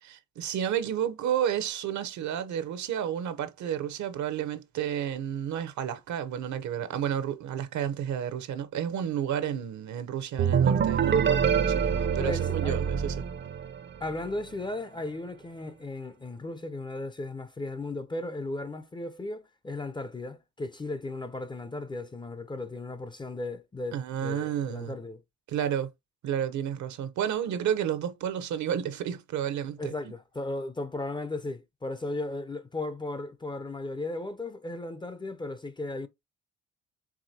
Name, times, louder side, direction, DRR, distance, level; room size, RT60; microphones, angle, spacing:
voice 1, 0.0-13.2 23.9-24.9 25.5-25.9 26.2-29.9, right 9 dB, 70° right, 0.7 m, -31 dB
sound 1, 10.4-14.1, right 7 dB, 40° right, 0.5 m, -25 dB
voice 2, 12.2-12.8 14.0-25.2 29.8-36.1, left 2 dB, 15° left, 0.4 m, -36 dB
4.8 x 3.5 x 2.7 m
cardioid pair, 90°, 30 cm